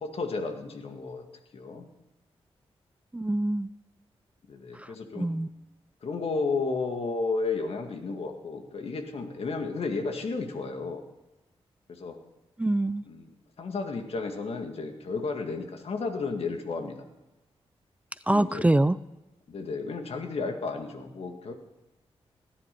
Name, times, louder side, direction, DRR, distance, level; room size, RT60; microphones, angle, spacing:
voice 1, 0.0-1.2 1.5-1.8 4.5-5.3 6.0-11.0 11.9-12.2 13.1-13.3 13.6-17.0 18.3-18.7 19.5-21.5, left 4 dB, 70° left, 5 dB, 2.0 m, -32 dB
voice 2, 3.1-3.7 4.7-5.5 12.6-13.0 18.3-19.0, right 1 dB, 15° right, 16 dB, 0.4 m, -25 dB
17.5 x 10.0 x 5.3 m, 1.0 s
cardioid pair, 75°, 11 cm